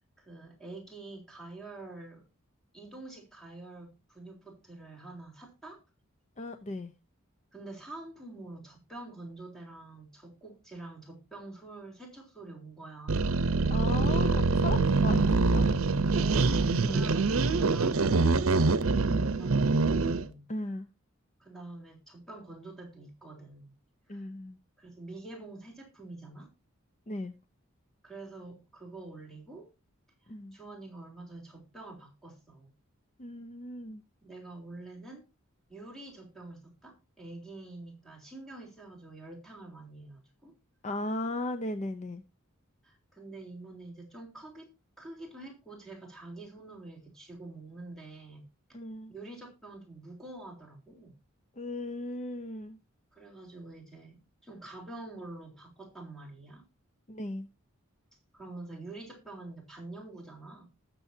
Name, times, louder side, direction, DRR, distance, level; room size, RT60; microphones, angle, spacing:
voice 1, 0.2-2.2 2.7-5.8 7.5-13.4 16.1-20.5 21.4-23.7 24.1-24.3 24.8-26.5 28.0-29.7 30.2-32.7 34.2-35.2 35.7-40.6 42.8-44.7 45.0-48.4 49.1-51.2 53.1-56.6 58.3-60.7, right 2 dB, ahead, 3.6 m, -46 dB
voice 2, 6.4-6.9 13.7-15.9 16.8-17.1 20.5-20.9 24.1-24.6 27.1-27.4 30.3-30.6 33.2-34.0 40.8-42.2 48.7-49.1 51.6-52.8 57.1-57.5, left 1 dB, 35° left, 0.7 m, -37 dB
sound 1, 13.1-20.3, right 3 dB, 75° right, 0.8 m, -25 dB
19.5 x 6.9 x 2.8 m
head